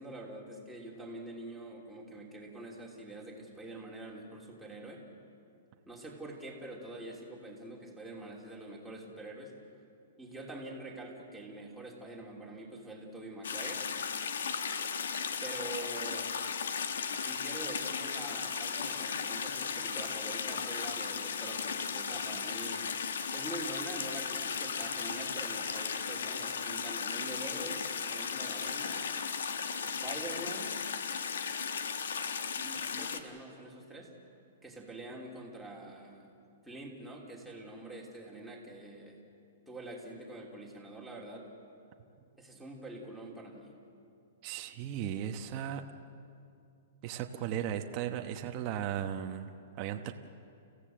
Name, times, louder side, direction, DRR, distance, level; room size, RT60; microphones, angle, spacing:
voice 1, 0.0-5.0 5.9-9.5 10.2-13.9 15.4-16.3 17.2-22.9 23.3-29.0 29.8-30.8 32.5-34.1 34.6-36.3 36.6-39.2 39.7-41.5 42.4-43.7, right 2 dB, ahead, -4 dB, 3.0 m, -45 dB
sound 1, 13.4-33.2, left 6 dB, 85° left, 1.4 m, -36 dB
voice 2, 44.4-45.9 47.0-49.5 49.8-50.1, right 10 dB, 30° right, 5 dB, 1.0 m, -36 dB
30.0 x 15.5 x 7.6 m, 2.5 s
hypercardioid pair, 160°, 0 cm